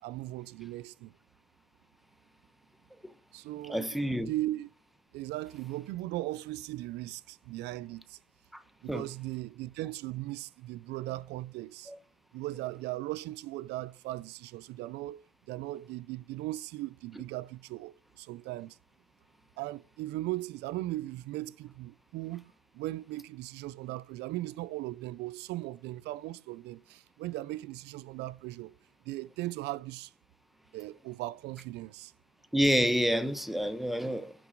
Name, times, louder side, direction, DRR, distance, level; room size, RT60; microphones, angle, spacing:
voice 1, 0.0-1.1 3.3-4.7 5.1-8.2 8.8-11.9 12.3-18.8 19.6-28.7 29.0-30.1 30.7-32.1, right 17 dB, 80° right, 0.4 m, -38 dB
voice 2, 3.7-4.3 8.5-8.6 8.9-9.0 11.9-12.0 32.5-34.3, equal, ahead, 0.8 m, -28 dB
11.0 x 3.8 x 7.4 m
cardioid pair, 110°, 17 cm